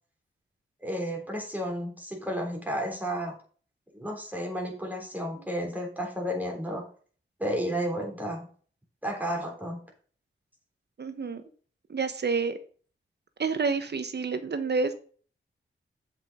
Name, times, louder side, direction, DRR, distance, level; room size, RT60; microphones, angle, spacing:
voice 1, 0.8-3.4 3.9-6.9 7.4-8.5 9.0-9.8, equal, 10° right, 0 dB, 3.4 m, -32 dB
voice 2, 11.0-11.4 11.9-12.6 13.4-15.0, right 4 dB, 55° right, 10 dB, 1.2 m, -28 dB
7.3 x 5.7 x 5.1 m, 0.42 s
cardioid pair, 75°, 21 cm